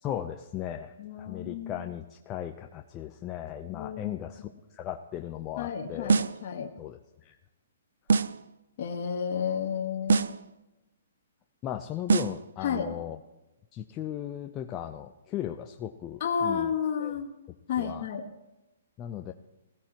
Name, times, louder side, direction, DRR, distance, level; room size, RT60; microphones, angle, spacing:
voice 1, 0.0-6.1 6.8-7.4 11.6-13.2 13.7-16.7 17.0-17.1 17.8-18.0 19.0-19.3, left 11 dB, 25° left, 5 dB, 0.7 m, -37 dB
voice 2, 1.0-1.8 3.6-4.2 5.6-6.7 8.8-10.3 12.6-12.9 16.2-17.3 17.7-18.2, left 7 dB, 50° left, 0 dB, 1.6 m, -31 dB
sound 1, 6.1-6.5 8.1-8.5 10.1-10.5 12.1-12.5, right 4 dB, 75° right, 0.6 m, -24 dB
20.5 x 16.5 x 3.0 m, 1.0 s
hypercardioid pair, 140°, 0 cm